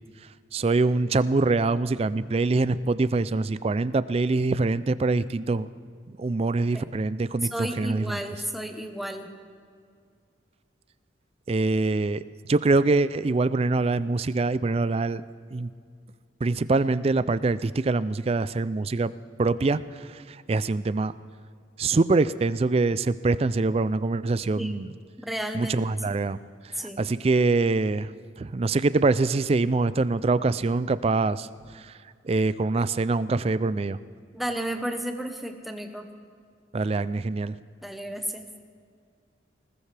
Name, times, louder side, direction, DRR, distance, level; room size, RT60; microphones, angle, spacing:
voice 1, 0.5-5.7 6.1-8.2 11.5-12.2 12.5-15.2 15.5-15.7 16.4-19.1 19.4-21.1 21.8-24.9 25.5-26.4 26.7-28.1 28.4-31.9 32.2-34.0 36.7-37.6, right 3 dB, 30° right, 15 dB, 0.3 m, -24 dB
voice 2, 7.5-9.3 24.6-24.9 25.2-25.8 26.7-27.0 34.3-36.1 37.8-38.4, right 1 dB, ahead, 4 dB, 0.9 m, -33 dB
20.5 x 18.5 x 3.4 m, 2.2 s
head